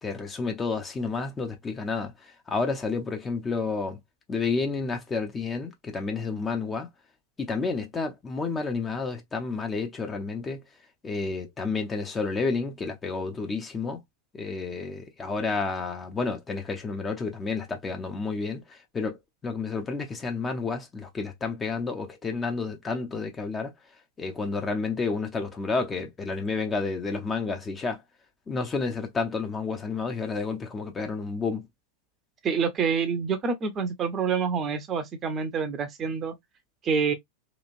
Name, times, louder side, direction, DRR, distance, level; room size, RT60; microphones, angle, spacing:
voice 1, 0.0-4.0 4.3-6.9 7.4-10.6 11.0-14.0 14.3-19.2 19.4-23.7 24.2-28.0 28.5-31.7, left 4 dB, 20° left, 0.6 m, -30 dB
voice 2, 32.4-36.4 36.8-37.1, right 6 dB, 25° right, 0.6 m, -27 dB
3.0 x 2.5 x 2.4 m
figure-of-eight pair, 90°, 0 cm